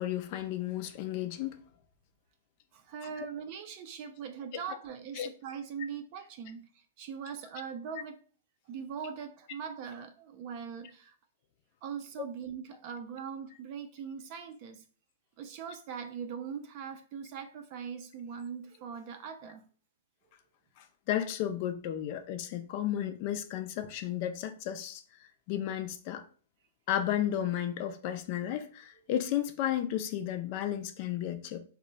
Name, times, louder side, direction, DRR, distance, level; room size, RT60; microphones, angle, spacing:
voice 1, 0.0-1.6 5.2-5.3 21.1-25.0 25.5-26.2 26.9-31.6, left 11 dB, 40° left, 0.4 m, -33 dB
voice 2, 2.7-6.7 7.0-8.2 8.7-11.1 11.8-14.8 15.4-19.7, right 7 dB, 40° right, 0.4 m, -41 dB
2.2 x 2.1 x 3.8 m
hypercardioid pair, 145°, 0 cm